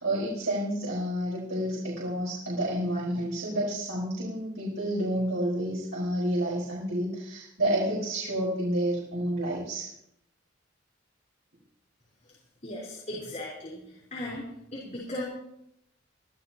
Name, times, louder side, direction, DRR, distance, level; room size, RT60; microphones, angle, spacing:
voice 1, 0.0-9.9, right 1 dB, 90° right, -6 dB, 4.7 m, -29 dB
voice 2, 12.6-13.8 14.1-15.2, left 1 dB, 35° left, -5 dB, 4.1 m, -37 dB
24.0 x 14.0 x 2.9 m, 0.77 s
head